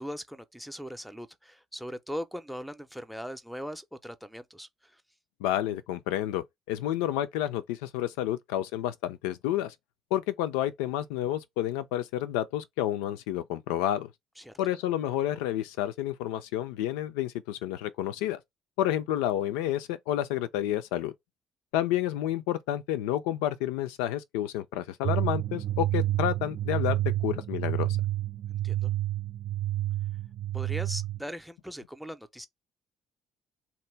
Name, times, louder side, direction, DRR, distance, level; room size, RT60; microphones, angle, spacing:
voice 1, 0.0-5.0 14.4-14.5 28.6-28.9 30.5-32.5, equal, ahead, 0.5 m, -40 dB
voice 2, 5.4-9.7 10.1-14.1 14.6-18.4 18.8-21.1 21.7-27.9, left 12 dB, 90° left, 0.4 m, -30 dB
sound 1, 25.0-31.2, right 14 dB, 60° right, 0.4 m, -29 dB
2.9 x 2.1 x 3.2 m
supercardioid pair, 65°, 0 cm